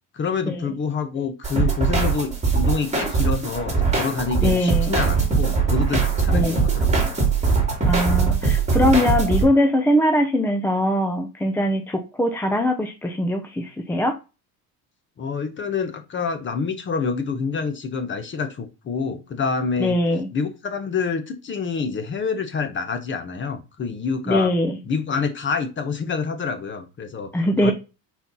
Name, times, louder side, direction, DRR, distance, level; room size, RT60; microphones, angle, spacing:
voice 1, 0.1-7.1 15.2-19.9 20.3-24.5 24.9-27.3 27.6-27.7, left 5 dB, 25° left, 1.1 m, -27 dB
sound 1, 1.4-9.4, right 5 dB, 15° right, 2.6 m, -21 dB
voice 2, 4.4-5.0 6.3-6.6 7.9-14.1 19.8-20.3 24.3-24.8 27.3-27.7, left 1 dB, 5° left, 0.5 m, -21 dB
4.6 x 4.3 x 5.5 m
cardioid pair, 145°, 42 cm